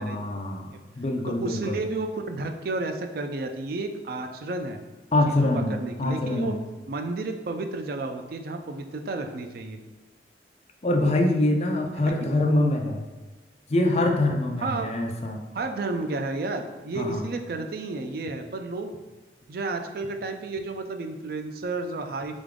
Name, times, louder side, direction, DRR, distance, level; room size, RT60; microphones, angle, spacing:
voice 1, 0.0-1.8 5.1-6.6 10.8-13.0 13.7-15.4 16.9-17.2, left 1 dB, 35° left, 2 dB, 0.5 m, -24 dB
voice 2, 1.3-4.8 5.3-6.5 6.9-9.8 12.0-12.3 14.6-14.9 15.5-18.9 19.5-22.4, right 3 dB, 55° right, 6 dB, 0.4 m, -32 dB
3.8 x 3.6 x 3.6 m, 1.3 s
head